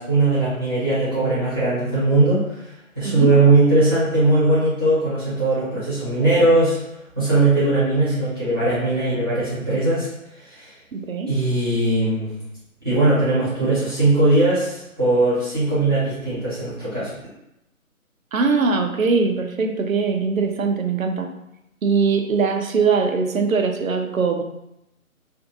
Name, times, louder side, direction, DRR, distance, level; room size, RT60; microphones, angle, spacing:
voice 1, 0.0-2.6 2.9-6.8 7.2-10.1 10.4-10.7 11.3-12.3 12.8-17.1, right 2 dB, 15° right, -12 dB, 0.7 m, -19 dB
voice 2, 10.9-11.3 18.3-21.3 21.8-24.4, right 4 dB, 70° right, 4 dB, 0.5 m, -21 dB
2.6 x 2.5 x 2.5 m, 0.86 s
figure-of-eight pair, 150°, 43 cm